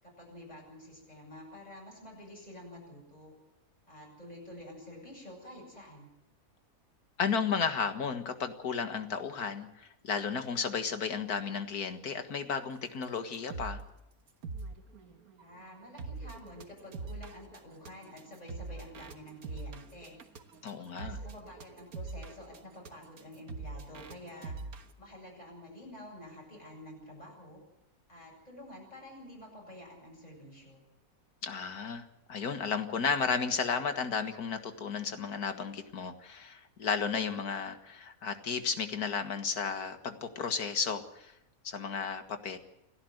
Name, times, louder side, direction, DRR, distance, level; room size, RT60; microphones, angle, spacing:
voice 1, 0.0-3.3 3.9-6.1 15.4-20.2 20.9-24.6 25.0-27.6 28.1-30.8, left 1 dB, 25° left, -3 dB, 8.2 m, -49 dB
voice 2, 7.2-13.8 20.6-21.2 31.4-41.3 41.6-42.6, left 6 dB, 80° left, 8 dB, 2.1 m, -33 dB
sound 1, 13.0-13.1 13.3-13.9 14.3-24.9, right 3 dB, 70° right, 1.9 m, -43 dB
29.5 x 11.5 x 7.9 m, 0.87 s
omnidirectional pair, 1.6 m